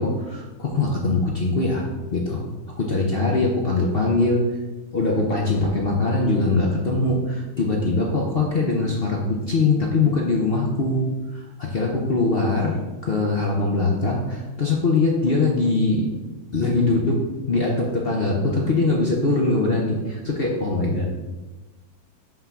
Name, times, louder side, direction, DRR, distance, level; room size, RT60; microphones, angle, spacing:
voice 1, 0.0-1.9 2.1-2.4 2.8-4.4 4.9-11.0 11.3-12.8 13.0-16.1 16.5-17.2 17.5-21.1, left 3 dB, 65° left, -1 dB, 0.5 m, -22 dB
5.7 x 3.6 x 5.9 m, 1.1 s
omnidirectional pair, 2.1 m